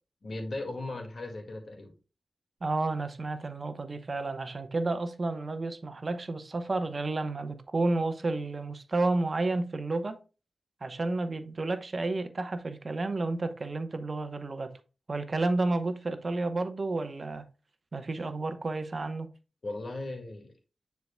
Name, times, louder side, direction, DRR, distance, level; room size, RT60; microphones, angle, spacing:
voice 1, 0.2-1.9 19.6-20.5, left 2 dB, 60° left, 1.9 m, -37 dB
voice 2, 2.6-10.2 10.8-14.7 15.1-17.4 17.9-19.3, right 2 dB, 50° right, 0.8 m, -31 dB
9.5 x 4.6 x 2.2 m
cardioid pair, 60°, 0 cm